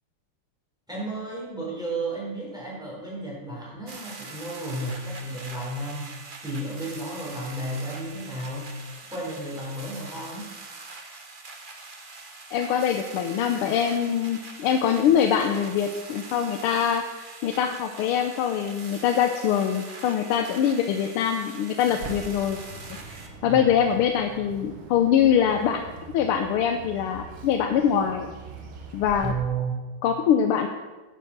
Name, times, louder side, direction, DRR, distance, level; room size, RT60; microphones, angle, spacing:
voice 1, 0.9-6.1 6.4-8.7 9.1-10.5 23.4-23.7 29.2-29.8, right 2 dB, ahead, -5 dB, 4.5 m, -33 dB
sound 1, 3.9-23.3, right 3 dB, 30° right, 1.1 m, -43 dB
voice 2, 12.5-22.6 23.4-25.8 26.1-28.3 28.9-29.3 30.0-30.7, left 8 dB, 85° left, 6 dB, 1.6 m, -23 dB
Bird, 21.9-29.3, right 4 dB, 70° right, 2.1 m, -42 dB
10.0 x 8.8 x 6.5 m, 1.2 s
omnidirectional pair, 2.4 m